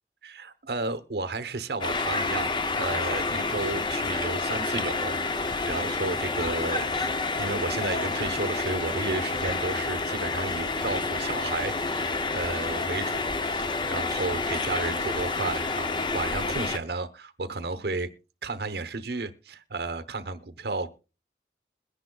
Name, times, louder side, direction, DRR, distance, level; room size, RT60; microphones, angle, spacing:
voice 1, 0.2-6.9 7.4-18.1 18.4-20.9, right 3 dB, 70° right, 12 dB, 0.9 m, -33 dB
sound 1, 1.8-16.8, left 3 dB, 25° left, 0.5 m, -29 dB
22.0 x 10.0 x 2.3 m, 0.32 s
head